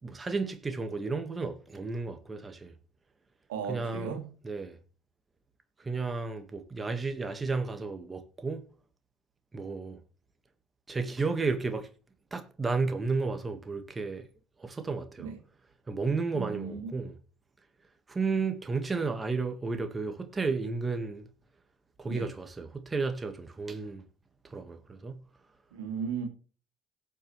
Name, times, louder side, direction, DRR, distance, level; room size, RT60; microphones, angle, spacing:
voice 1, 0.0-2.7 3.7-4.2 4.4-4.8 5.8-8.6 9.5-10.0 10.9-11.9 12.3-14.3 14.6-15.3 15.9-17.1 18.1-21.3 22.0-24.0 24.4-25.2, right 4 dB, 25° right, 1.8 m, -32 dB
voice 2, 3.5-4.3 15.2-15.3 16.3-17.0 22.1-22.3 25.7-26.3, right 7 dB, 85° right, 2.6 m, -36 dB
18.0 x 7.6 x 3.3 m
hypercardioid pair, 65°, 0 cm